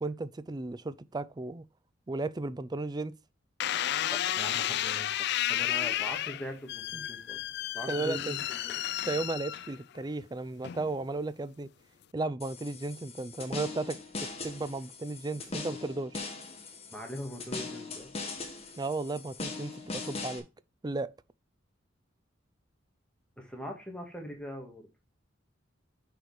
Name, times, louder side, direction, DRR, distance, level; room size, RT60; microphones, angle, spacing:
voice 1, 0.0-1.6 2.1-3.1 6.9-7.1 7.9-8.4 9.1-11.7 12.1-16.2 18.8-20.5 20.8-21.1, right 3 dB, 20° right, 0.4 m, -35 dB
sound 1, 3.6-10.0 10.6-11.1, left 12 dB, 55° left, 0.4 m, -32 dB
voice 2, 4.1-7.4 7.7-8.8 15.5-15.8 16.9-18.1 23.4-24.9, equal, 5° left, 1.9 m, -42 dB
sound 2, 12.4-20.4, left 3 dB, 30° left, 1.4 m, -40 dB
6.4 x 5.0 x 4.8 m
head